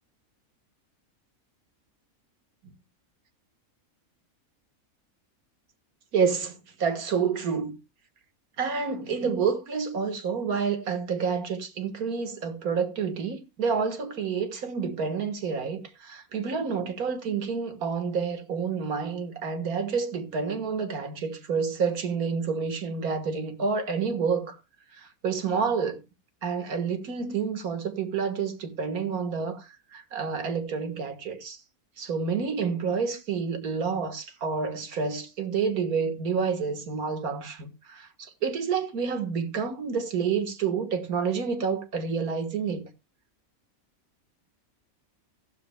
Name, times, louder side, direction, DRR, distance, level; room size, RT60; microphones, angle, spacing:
voice 1, 6.1-7.8 8.6-24.6 24.9-26.0 26.4-31.6 32.0-42.9, right 5 dB, 85° right, 1.9 m, -29 dB
14.5 x 12.5 x 2.2 m
omnidirectional pair, 1.5 m